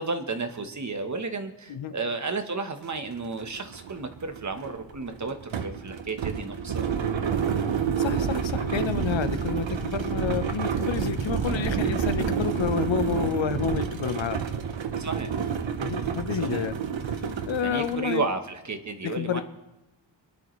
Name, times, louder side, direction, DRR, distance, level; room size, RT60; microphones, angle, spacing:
voice 1, 0.0-5.4 5.6-6.9 15.0-15.3 16.4-16.7 17.6-19.4, right 3 dB, 40° right, 7 dB, 1.2 m, -32 dB
sound 1, 2.8-2.9 3.3-18.0, right 7 dB, 80° right, 1.1 m, -29 dB
voice 2, 8.0-14.4 15.8-16.8 17.5-18.3 19.0-19.4, left 8 dB, 80° left, 11 dB, 0.9 m, -29 dB
23.5 x 10.5 x 3.2 m, 0.99 s
wide cardioid pair, 140°, 45 cm